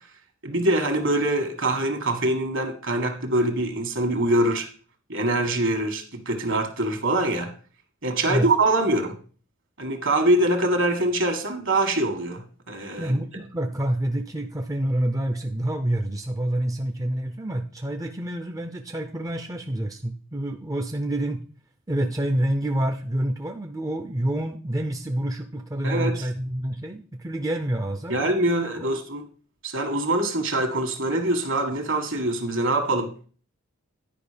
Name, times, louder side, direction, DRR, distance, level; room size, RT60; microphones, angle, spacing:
voice 1, 0.4-4.7 5.1-7.5 8.0-9.2 9.8-13.1 25.8-26.3 28.1-29.2 29.6-33.1, right 1 dB, 60° right, 6 dB, 1.7 m, -24 dB
voice 2, 13.0-21.4 21.9-28.2 28.8-28.9, right 1 dB, 15° right, 5 dB, 0.5 m, -27 dB
10.0 x 5.1 x 5.1 m, 0.41 s
head